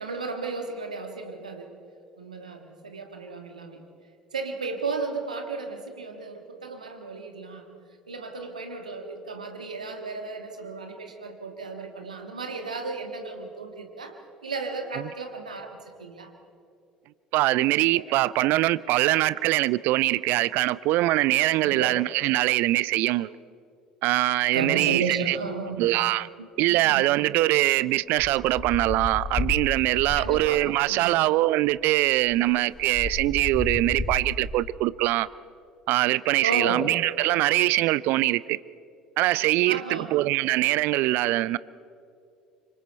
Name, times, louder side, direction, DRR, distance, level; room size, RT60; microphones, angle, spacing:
voice 1, 0.0-1.8 2.2-3.8 4.3-7.8 8.1-14.2 14.4-16.3 17.9-18.0 21.6-21.9 24.5-26.0 26.4-27.3 30.1-31.2 36.4-36.9 39.7-40.1, right 4 dB, 85° right, 1.7 m, -34 dB
voice 2, 17.3-23.4 24.0-25.4 25.8-26.3 26.6-35.3 35.9-38.6 39.2-41.6, right 17 dB, 55° right, 0.4 m, -23 dB
sound 1, 28.1-30.7 31.7-31.8 32.1-34.7, left 2 dB, 25° left, 3.3 m, -33 dB
26.5 x 25.0 x 4.4 m
figure-of-eight pair, 60°, 4 cm